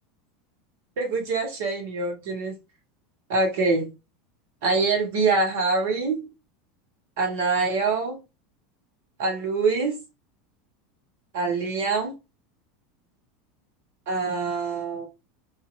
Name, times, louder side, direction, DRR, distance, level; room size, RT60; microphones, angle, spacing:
voice 1, 1.0-2.5 3.3-3.9 4.6-6.3 7.2-8.2 9.2-10.0 11.3-12.1 14.1-15.1, right 3 dB, 60° right, 1.2 m, -24 dB
2.8 x 2.5 x 2.5 m
figure-of-eight pair, 80°, 0 cm